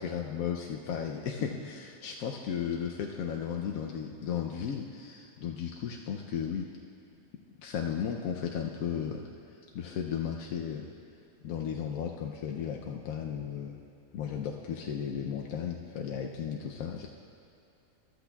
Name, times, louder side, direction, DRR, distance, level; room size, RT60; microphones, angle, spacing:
voice 1, 0.0-6.7 7.6-9.2 9.7-10.9 11.4-13.8 14.1-17.1, left 8 dB, 85° left, 1 dB, 1.1 m, -35 dB
14.0 x 12.5 x 2.3 m, 2.6 s
omnidirectional pair, 1.5 m